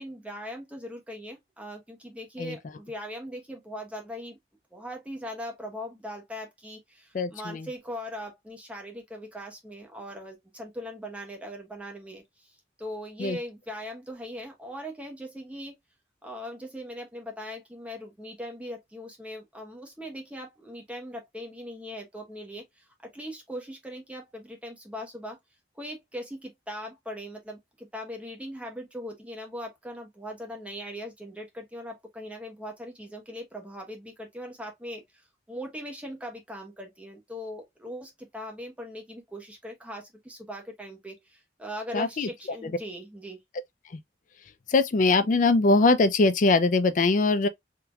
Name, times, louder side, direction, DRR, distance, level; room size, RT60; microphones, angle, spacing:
voice 1, 0.0-4.4 4.7-15.7 16.2-22.9 23.1-25.4 25.7-43.4, equal, 10° right, 1.0 m, -40 dB
voice 2, 7.1-7.7 13.2-13.4 41.9-42.3 44.7-47.5, left 3 dB, 45° left, 0.4 m, -22 dB
3.6 x 2.8 x 2.3 m
head